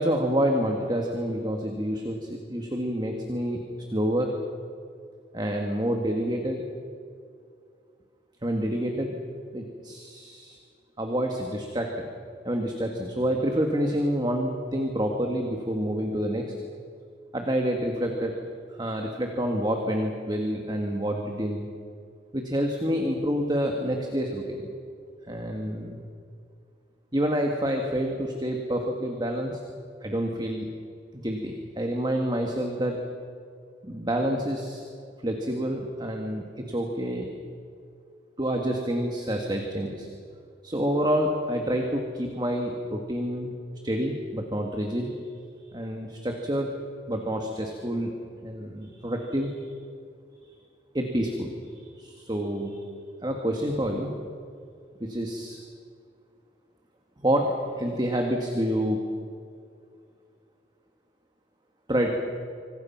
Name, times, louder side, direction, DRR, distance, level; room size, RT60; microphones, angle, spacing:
voice 1, 0.0-3.6 3.9-4.3 5.3-6.6 8.4-9.2 9.5-10.6 11.0-12.1 12.4-16.5 17.3-18.3 18.7-21.6 22.3-24.7 25.2-26.0 27.1-29.6 30.0-30.7 31.1-33.0 33.8-34.8 35.2-37.3 38.4-40.1 40.6-43.5 43.8-45.3 45.7-46.7 47.1-48.1 48.4-49.7 50.9-52.8 53.2-54.1 55.0-55.6 57.2-59.0 61.9-62.1, equal, 25° right, 2 dB, 2.0 m, -28 dB
26.0 x 26.0 x 5.9 m, 2.3 s
head